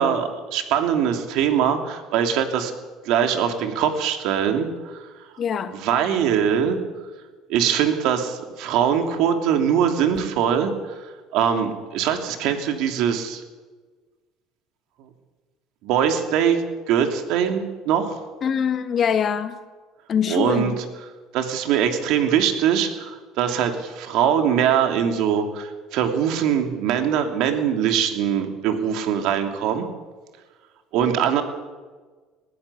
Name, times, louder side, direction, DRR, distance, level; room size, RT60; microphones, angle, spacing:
voice 1, 0.0-2.7 3.0-5.1 5.7-6.8 7.5-10.7 11.3-13.4 15.8-18.2 20.3-20.8 21.3-29.9 30.9-31.4, right 8 dB, 70° right, 5 dB, 3.0 m, -22 dB
voice 2, 5.4-5.8 18.4-19.6 20.1-20.8, left 7 dB, 40° left, 9 dB, 1.9 m, -23 dB
19.5 x 15.5 x 8.5 m, 1.3 s
cardioid pair, 115°, 0 cm